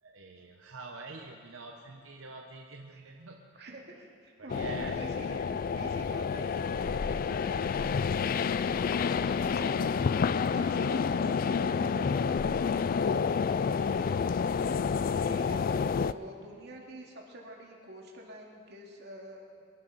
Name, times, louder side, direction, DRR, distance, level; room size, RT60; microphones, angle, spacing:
voice 1, 0.0-3.5 4.4-5.0 9.1-9.6 11.2-11.7 13.8-14.2, right 3 dB, 85° right, 1 dB, 1.0 m, -47 dB
voice 2, 3.5-7.9 9.0-10.1 10.5-12.3 15.2-19.7, right 1 dB, 55° right, -1 dB, 2.3 m, -47 dB
sound 1, 4.5-16.1, left 6 dB, 45° left, 0.3 m, -29 dB
sound 2, 9.7-15.3, equal, 5° right, 3.4 m, -50 dB
23.0 x 11.5 x 4.1 m, 2.2 s
head